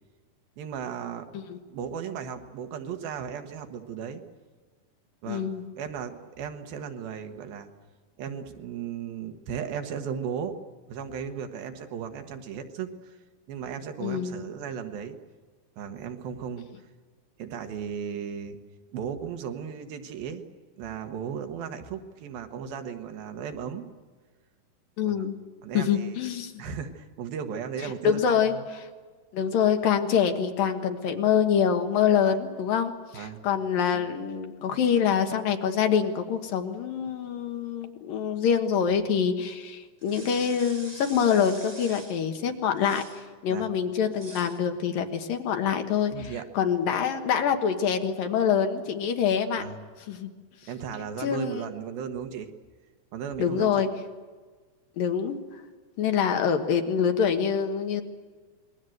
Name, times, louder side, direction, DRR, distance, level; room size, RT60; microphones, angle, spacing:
voice 1, 0.6-1.2 1.7-4.2 5.2-7.7 8.2-10.6 10.9-13.2 13.5-15.2 15.8-16.7 17.4-18.6 18.9-20.4 20.8-23.9 25.0-25.3 25.6-26.2 26.6-28.7 32.2-32.3 33.1-33.4 43.5-43.6 46.1-46.5 49.6-49.9 50.7-52.5 53.1-53.9, right 7 dB, 70° right, 6 dB, 3.2 m, -36 dB
voice 2, 5.3-5.6 14.0-14.4 25.0-25.3 25.7-26.6 28.0-28.5 29.3-43.0 43.4-49.6 50.1-50.3 51.2-51.6 53.4-53.9 55.0-55.4 56.0-58.0, left 7 dB, 70° left, 5 dB, 3.0 m, -25 dB
sound 1, 40.0-42.3 42.8-43.3 44.1-44.6, right 2 dB, 40° right, 0.5 m, -46 dB
27.0 x 21.5 x 7.9 m, 1.4 s
omnidirectional pair, 4.4 m